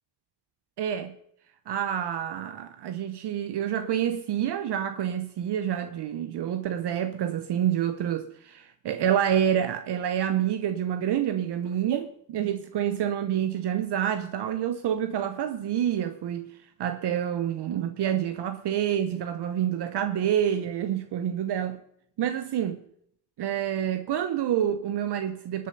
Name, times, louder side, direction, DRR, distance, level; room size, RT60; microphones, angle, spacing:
voice 1, 0.8-1.1 1.7-16.5 16.8-21.8 22.2-22.8 23.4-25.7, right 10 dB, 70° right, 0.9 m, -28 dB
20.5 x 7.6 x 5.4 m
supercardioid pair, 45°, 42 cm